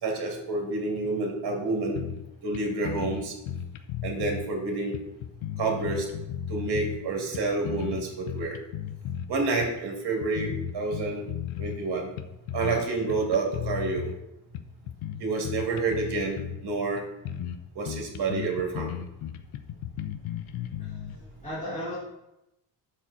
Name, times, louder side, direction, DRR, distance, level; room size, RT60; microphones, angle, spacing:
voice 1, 0.0-2.0 2.4-3.3 4.0-4.9 5.6-6.0 6.5-8.6 9.3-11.3 11.6-12.1 12.5-14.1 15.2-17.1 17.7-18.9, right 3 dB, 55° right, 1 dB, 2.8 m, -29 dB
sound 1, 2.0-2.3 2.5-2.6 2.8-4.5 4.9-7.0 7.3-9.3 9.6-9.8 10.2-11.8 12.2-12.8 13.1-14.2 14.5-16.6 17.0-17.1 17.3-17.6 17.9-21.2, left 10 dB, 85° left, 0.8 m, -35 dB
voice 2, 20.8-22.0, equal, 15° left, -12 dB, 3.5 m, -37 dB
9.3 x 7.2 x 4.3 m, 0.88 s
cardioid pair, 145°, 47 cm